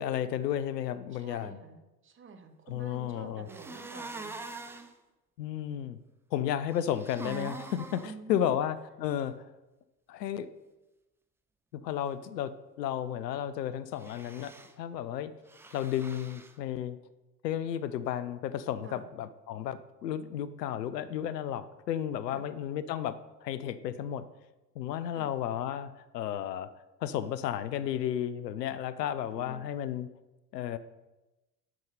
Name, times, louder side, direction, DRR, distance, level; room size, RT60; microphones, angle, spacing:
voice 1, 0.0-1.6 2.7-3.5 5.4-6.0 6.3-9.4 10.1-10.5 11.7-15.3 15.7-17.0 17.4-24.2 24.8-26.7 27.0-30.1 30.5-30.8, left 10 dB, 75° left, 15 dB, 0.7 m, -33 dB
voice 2, 1.1-4.5 8.0-8.6 18.8-19.1 22.3-22.5 25.1-25.4 29.3-29.6, right 5 dB, 25° right, 7 dB, 1.0 m, -48 dB
sound 1, 3.5-4.9 6.7-8.1 14.0-14.7 15.5-16.5, right 3 dB, 5° right, 0.4 m, -43 dB
7.7 x 6.1 x 5.3 m, 1.0 s
figure-of-eight pair, 75°, 49 cm